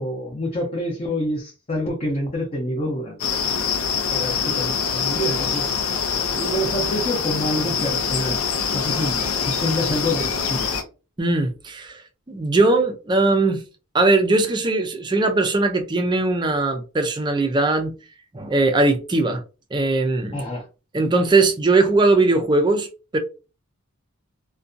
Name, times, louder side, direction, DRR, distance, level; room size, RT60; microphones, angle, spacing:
voice 1, 0.0-3.2 4.1-5.6 6.4-8.4 8.7-10.7 20.3-20.6, equal, 30° left, 0.6 m, -27 dB
sound 1, 3.2-10.8, left 6 dB, 85° left, 0.6 m, -24 dB
voice 2, 11.2-12.0 12.3-13.6 13.9-17.9 18.3-19.4 19.7-20.4 20.9-22.9 23.1-23.2, right 2 dB, 20° right, 0.4 m, -19 dB
2.6 x 2.2 x 2.5 m
head